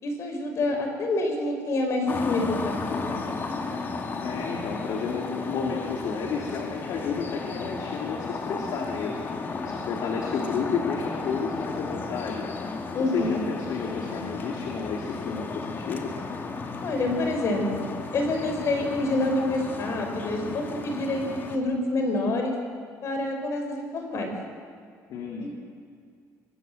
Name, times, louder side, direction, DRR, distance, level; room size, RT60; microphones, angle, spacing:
voice 1, 0.0-2.8 3.1-3.2 12.9-13.4 16.8-22.5 23.0-24.3 25.4-25.5, left 2 dB, 50° left, 4 dB, 4.9 m, -27 dB
sound 1, 2.1-21.6, left 4 dB, 35° left, 2.2 m, -34 dB
voice 2, 4.1-9.2 9.6-12.5 13.0-16.1 25.1-25.5, left 5 dB, 70° left, 1 dB, 2.8 m, -31 dB
24.0 x 21.0 x 7.9 m, 2.2 s
cardioid pair, 155°, 6 cm